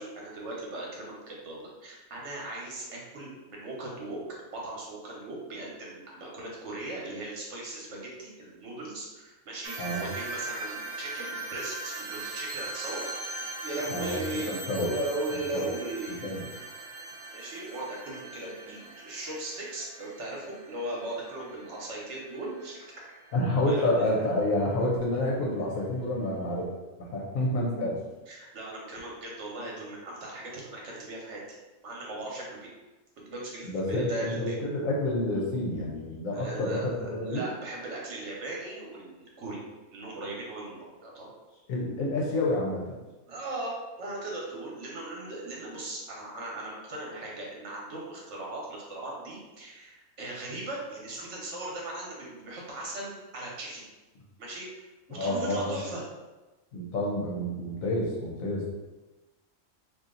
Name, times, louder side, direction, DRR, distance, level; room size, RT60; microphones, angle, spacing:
voice 1, 0.0-13.1 13.6-16.3 17.3-22.8 23.7-23.8 28.3-31.4 31.8-32.7 33.2-34.6 36.3-39.7 39.9-41.3 43.3-53.8 54.4-54.8 55.1-56.0, right 2 dB, 60° right, -3 dB, 1.2 m, -38 dB
sound 1, 9.6-24.6, right 2 dB, 85° right, 0.4 m, -41 dB
voice 2, 13.9-14.2 14.4-14.9 15.5-15.7 16.2-16.5 23.3-26.7 27.0-28.0 33.6-37.4 41.7-43.0 55.1-55.8 56.7-58.7, left 1 dB, 75° left, -3 dB, 1.1 m, -29 dB
2.8 x 2.7 x 3.7 m, 1.1 s
omnidirectional pair, 1.4 m